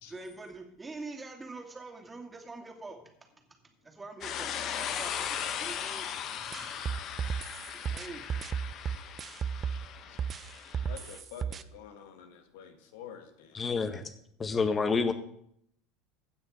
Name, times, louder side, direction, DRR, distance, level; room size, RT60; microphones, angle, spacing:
voice 1, 0.0-3.0 3.8-7.2 7.7-8.3, right 3 dB, 15° right, 3 dB, 2.5 m, -45 dB
sound 1, 4.2-11.2, left 9 dB, 45° left, 1.1 m, -38 dB
sound 2, 6.5-9.9 10.2-11.6, right 7 dB, 35° right, 0.6 m, -34 dB
voice 2, 10.8-13.6, left 8 dB, 65° left, 7 dB, 1.7 m, -48 dB
voice 3, 13.5-14.1 14.4-15.1, left 4 dB, 25° left, 10 dB, 1.4 m, -28 dB
16.0 x 6.2 x 5.2 m, 0.70 s
figure-of-eight pair, 75°, 0 cm